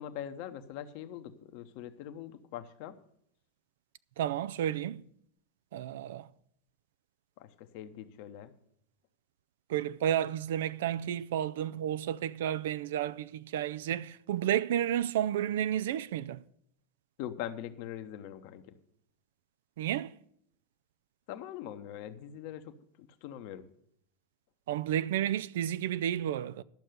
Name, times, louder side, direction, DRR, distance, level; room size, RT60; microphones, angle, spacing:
voice 1, 0.0-3.0 7.4-8.5 17.2-18.8 21.3-23.7, left 10 dB, 55° left, 1.0 m, -42 dB
voice 2, 4.2-5.0 5.7-6.3 9.7-16.4 19.8-20.1 24.7-26.6, right 11 dB, 65° right, 0.4 m, -31 dB
12.0 x 6.4 x 7.9 m
figure-of-eight pair, 90°, 0 cm